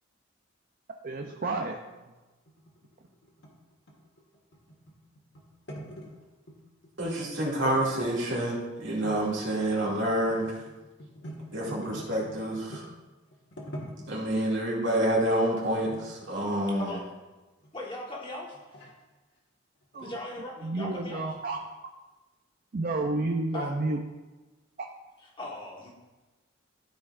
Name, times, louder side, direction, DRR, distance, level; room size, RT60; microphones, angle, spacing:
voice 1, 1.0-1.8 7.6-7.7 19.9-20.1 20.6-21.6 22.7-24.0, right 2 dB, 45° right, 2 dB, 0.5 m, -30 dB
sound 1, 2.5-6.6 6.8-7.4 7.7-8.7 9.0-9.2 9.4-12.9 13.3-14.4 15.0-15.2 15.8-17.0 17.6-17.7 18.3-18.9 19.8-20.0 20.3-20.4 20.6-20.7 21.1-21.3, equal, 60° left, 1.5 m, -45 dB
voice 2, 7.0-10.5 11.5-12.8 14.1-16.9, right 1 dB, 60° right, -4 dB, 2.3 m, -28 dB
voice 3, 17.7-18.8 20.0-21.3 23.5-23.7 25.4-25.9, left 2 dB, 25° left, -3 dB, 1.5 m, -39 dB
13.5 x 4.8 x 2.5 m, 1.2 s
head